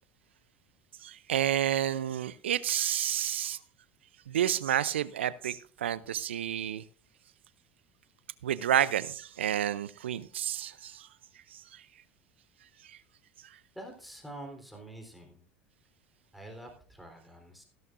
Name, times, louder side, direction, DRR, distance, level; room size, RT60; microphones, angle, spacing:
voice 1, 1.0-3.6 4.3-6.8 8.4-11.1 11.5-11.8 12.8-13.0, right 10 dB, 80° right, 0.6 m, -30 dB
voice 2, 13.7-15.4 16.3-17.6, right 1 dB, ahead, 3.9 m, -46 dB
15.5 x 12.5 x 2.6 m
hypercardioid pair, 75°, 6 cm